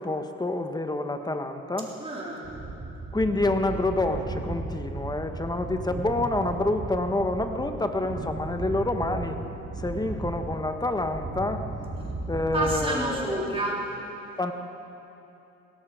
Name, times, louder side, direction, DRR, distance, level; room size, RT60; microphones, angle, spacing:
voice 1, 0.0-1.9 3.1-9.4 9.8-11.6 12.3-13.6 14.4-14.5, left 2 dB, 15° left, 7 dB, 1.1 m, -28 dB
voice 2, 2.0-2.5 12.5-13.9, right 1 dB, 20° right, -4 dB, 3.7 m, -29 dB
sound 1, 2.4-13.5, right 2 dB, 35° right, 2.3 m, -36 dB
17.0 x 14.0 x 4.9 m, 2.9 s
cardioid pair, 90°, 30 cm